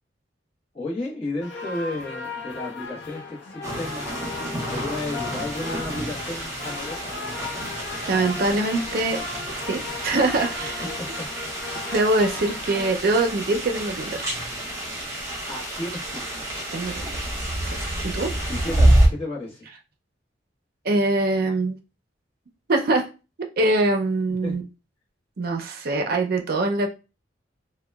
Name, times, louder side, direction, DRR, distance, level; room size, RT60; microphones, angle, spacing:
voice 1, 0.7-4.3 4.6-7.1 11.0-11.2 15.5-16.5 18.5-19.7 24.4-24.7, left 2 dB, 35° left, -5 dB, 1.0 m, -33 dB
sound 1, 1.4-12.9, left 4 dB, 70° left, 0.5 m, -36 dB
sound 2, 3.6-19.1, right 1 dB, 15° right, 0.8 m, -27 dB
voice 2, 8.1-9.2 9.7-10.8 11.9-14.3 16.7-17.3 17.6-17.7 18.0-18.3 20.8-21.8 22.7-23.1 23.6-24.6 25.4-26.9, right 2 dB, 55° right, 4 dB, 0.5 m, -23 dB
2.8 x 2.1 x 2.2 m, 0.30 s
head